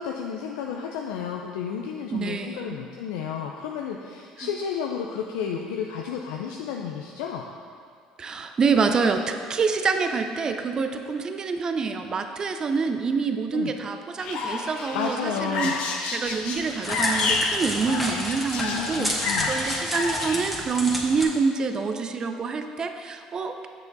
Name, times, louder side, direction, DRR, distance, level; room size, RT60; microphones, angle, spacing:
voice 1, 0.0-7.4 13.5-13.7 14.9-15.9 18.7-19.5, left 7 dB, 85° left, 1 dB, 0.4 m, -32 dB
voice 2, 2.1-2.8 4.4-4.5 8.2-15.7 16.1-23.7, right 4 dB, 35° right, 6 dB, 0.5 m, -26 dB
sound 1, 14.2-20.4, left 4 dB, 65° left, 0.8 m, -29 dB
Crackle, 16.3-21.2, equal, ahead, 1.7 m, -31 dB
7.0 x 6.6 x 4.0 m, 2.1 s
supercardioid pair, 80°, 2 cm